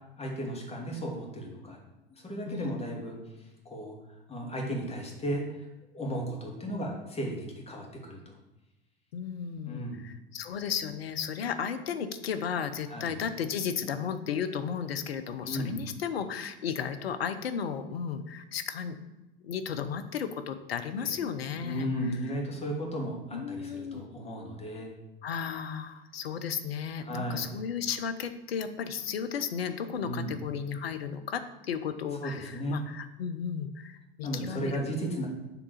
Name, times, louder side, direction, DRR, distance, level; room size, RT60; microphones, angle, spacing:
voice 1, 0.2-1.8 2.1-3.2 3.7-3.9 4.3-5.7 5.9-8.3 9.7-10.0 12.9-13.1 15.4-15.8 21.0-21.1 21.6-24.9 27.0-27.5 30.0-30.4 32.2-32.8 34.2-35.3, equal, 20° left, -1 dB, 2.0 m, -35 dB
voice 2, 2.5-2.8 9.1-19.0 19.4-21.9 23.3-24.1 25.2-34.8, left 7 dB, 75° left, 9 dB, 0.7 m, -34 dB
6.8 x 3.6 x 6.3 m, 0.99 s
figure-of-eight pair, 75°, 30 cm